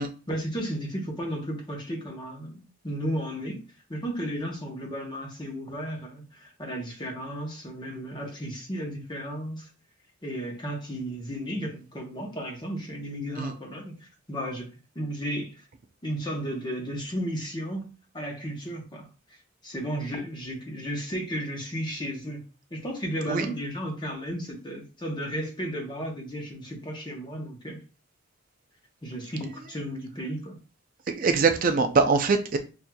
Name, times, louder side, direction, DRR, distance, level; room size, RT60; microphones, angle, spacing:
voice 1, 0.3-9.7 10.2-14.7 14.9-15.6 16.0-27.8 29.0-30.6, equal, 20° left, 0.9 m, -34 dB
voice 2, 31.1-32.6, right 4 dB, 40° right, 0.4 m, -23 dB
5.9 x 2.6 x 2.3 m
head